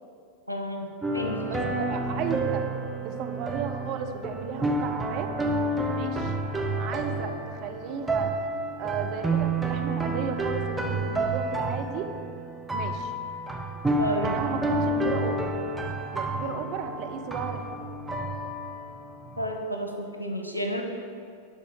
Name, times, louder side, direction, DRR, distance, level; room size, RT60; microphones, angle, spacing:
voice 1, 0.5-1.4 14.0-14.4 16.4-16.6 19.4-20.8, equal, 85° left, 3 dB, 1.0 m, -31 dB
sound 1, 1.0-19.6, right 2 dB, 5° right, 0.9 m, -30 dB
voice 2, 1.5-2.7 3.0-5.3 5.9-6.3 6.8-8.4 8.8-12.1 12.7-13.1 14.2-15.5 16.1-17.8, right 6 dB, 40° right, 5 dB, 0.8 m, -34 dB
11.5 x 4.1 x 6.4 m, 2.3 s
figure-of-eight pair, 90°, 0 cm